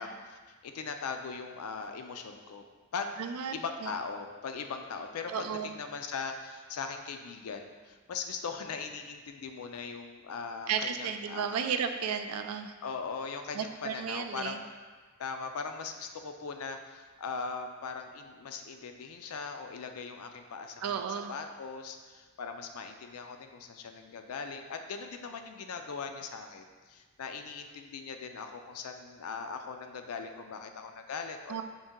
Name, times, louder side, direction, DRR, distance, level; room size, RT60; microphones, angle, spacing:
voice 1, 0.0-2.6 2.9-3.2 3.5-11.6 12.8-14.7 15.2-31.6, left 5 dB, 80° left, 5 dB, 0.4 m, -40 dB
voice 2, 3.2-3.5 3.8-3.9 5.3-5.7 10.7-12.7 13.5-14.6 20.8-21.3 31.5-31.6, right 7 dB, 75° right, 8 dB, 0.3 m, -33 dB
5.4 x 2.6 x 3.7 m, 1.4 s
head